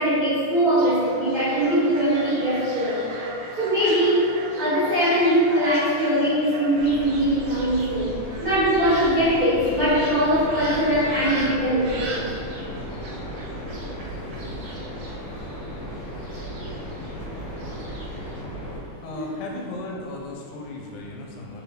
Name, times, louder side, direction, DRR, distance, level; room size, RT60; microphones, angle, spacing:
voice 1, 0.0-3.0 3.6-4.3 4.5-8.1 8.4-12.3 17.8-18.0 19.1-19.4, equal, 65° right, -16 dB, 0.9 m, -21 dB
Fowl, 0.8-18.4, right 2 dB, 90° right, 1.4 m, -39 dB
sound 1, 6.8-18.8, equal, 60° left, 1.5 m, -35 dB
voice 2, 19.0-21.6, left 2 dB, 80° left, -1 dB, 2.0 m, -36 dB
5.0 x 2.5 x 3.2 m, 2.6 s
omnidirectional pair, 3.7 m